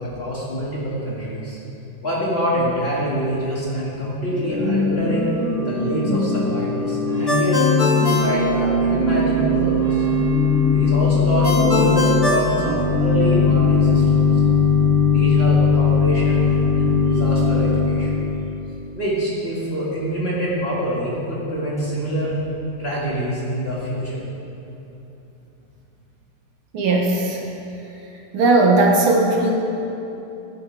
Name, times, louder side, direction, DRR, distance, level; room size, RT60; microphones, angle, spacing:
voice 1, 0.0-1.6 2.0-5.3 5.7-7.7 7.9-10.1 10.7-14.4 15.1-18.1 18.9-22.3 22.8-24.2, equal, 30° left, -7 dB, 2.3 m, -25 dB
Organ / Church bell, 4.3-18.4, left 4 dB, 40° right, 1.5 m, -19 dB
Ringtone, 7.3-9.2 11.4-13.4, left 2 dB, 65° left, 0.3 m, -24 dB
voice 2, 26.7-27.4 28.3-29.5, right 2 dB, 75° right, -1 dB, 2.1 m, -17 dB
16.0 x 9.4 x 3.5 m, 2.9 s
omnidirectional pair, 2.3 m